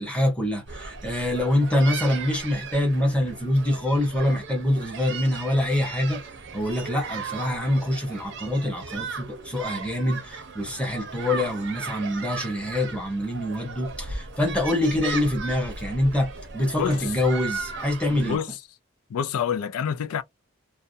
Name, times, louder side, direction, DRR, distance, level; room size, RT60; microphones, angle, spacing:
voice 1, 0.0-6.2 6.5-18.4, left 1 dB, 5° left, 0.8 m, -25 dB
sound 1, 0.7-18.4, right 4 dB, 55° right, 0.6 m, -37 dB
voice 2, 18.1-18.6 19.1-20.2, left 8 dB, 90° left, 0.4 m, -27 dB
2.4 x 2.1 x 2.6 m
head